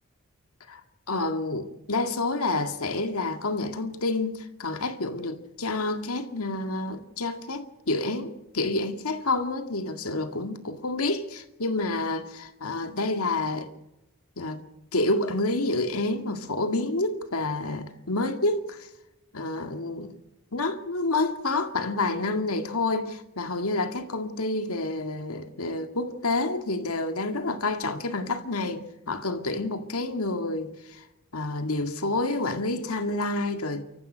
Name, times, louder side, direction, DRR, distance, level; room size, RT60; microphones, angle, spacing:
voice 1, 1.1-13.7 14.4-14.6 14.9-18.9 19.3-20.1 20.5-31.1 31.3-33.8, left 2 dB, 85° left, 2.0 m, -28 dB
29.0 x 14.5 x 6.4 m
head